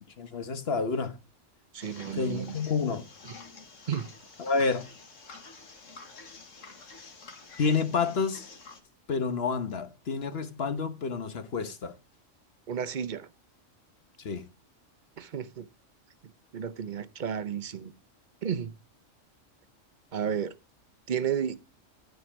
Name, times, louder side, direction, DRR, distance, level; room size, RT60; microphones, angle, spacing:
voice 1, 0.2-1.2 2.1-3.0 4.4-4.9 7.6-8.5 9.1-12.0 14.2-14.4, left 4 dB, 50° left, 1.3 m, -29 dB
voice 2, 1.7-2.6 3.9-4.1 12.7-13.3 15.2-15.7 16.5-17.9 18.4-18.7 20.1-20.5 21.1-21.6, right 8 dB, 45° right, 0.7 m, -32 dB
sound 1, 1.8-8.8, left 4 dB, 75° left, 2.0 m, -49 dB
12.5 x 5.3 x 6.0 m
omnidirectional pair, 1.3 m